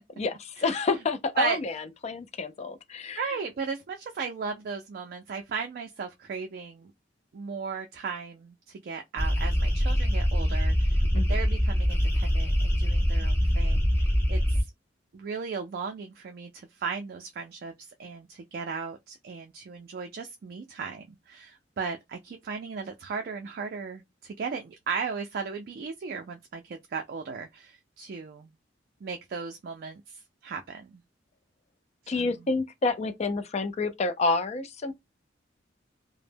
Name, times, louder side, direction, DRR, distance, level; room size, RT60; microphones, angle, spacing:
voice 1, 0.2-3.4 11.1-11.4 32.1-34.9, left 3 dB, 35° left, 0.4 m, -29 dB
voice 2, 3.2-6.9 7.3-14.6 15.1-17.7 18.0-28.5 29.0-30.9 32.1-32.4, right 5 dB, 55° right, 0.3 m, -36 dB
sound 1, 9.2-14.6, equal, 15° left, 0.7 m, -24 dB
2.1 x 2.0 x 3.3 m
head